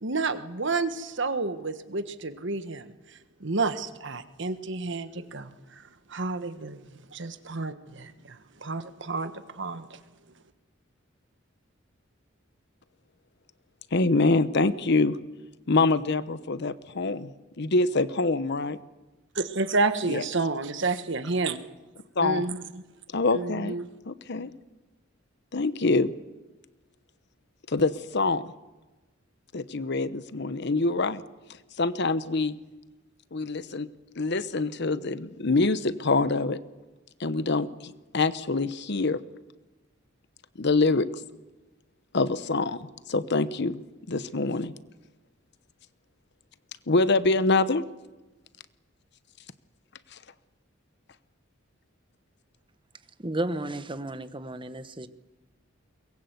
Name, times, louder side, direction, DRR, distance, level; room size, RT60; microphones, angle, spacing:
voice 1, 0.0-2.9 3.4-5.8 6.1-6.8 7.1-10.0 19.3-21.6 22.2-22.8 23.3-23.9, right 3 dB, 65° right, 11 dB, 1.4 m, -30 dB
voice 2, 13.9-15.2 15.7-17.3 17.6-18.8 20.1-20.2 22.2-22.4 23.1-23.8 24.1-24.5 25.5-26.1 27.7-28.5 29.5-31.2 31.8-32.6 33.3-33.9 34.2-36.6 37.2-39.2 40.6-41.1 42.1-42.8 43.1-43.8 44.1-44.7 46.9-47.8 50.1-50.2, left 3 dB, 60° left, 14 dB, 0.9 m, -25 dB
voice 3, 53.2-55.1, right 1 dB, 25° right, 11 dB, 1.2 m, -33 dB
23.0 x 20.5 x 8.1 m, 1.2 s
head